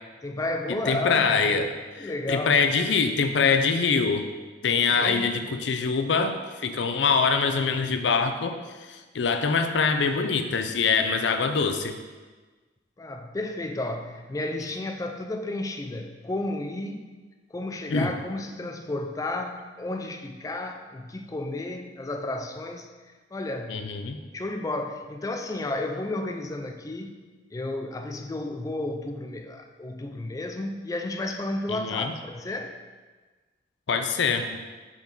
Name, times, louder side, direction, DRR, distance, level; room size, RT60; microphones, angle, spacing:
voice 1, 0.2-1.4 2.0-2.6 5.0-5.7 13.0-17.0 17.5-22.9 23.3-23.9 24.3-27.2 27.5-32.8, left 2 dB, 20° left, 5 dB, 0.3 m, -32 dB
voice 2, 0.9-4.3 4.6-12.0 17.9-18.1 23.7-24.2 31.7-32.1 33.9-34.6, left 5 dB, 85° left, 7 dB, 0.5 m, -24 dB
5.2 x 5.1 x 3.9 m, 1.3 s
head